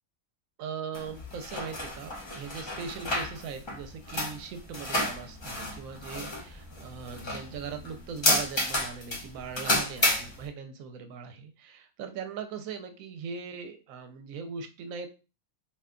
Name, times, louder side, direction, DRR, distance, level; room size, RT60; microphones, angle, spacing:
voice 1, 0.6-15.1, right 6 dB, 80° right, 7 dB, 1.0 m, -40 dB
sound 1, 0.9-10.5, left 1 dB, 40° left, 0.3 m, -31 dB
2.6 x 2.2 x 3.6 m, 0.32 s
omnidirectional pair, 1.4 m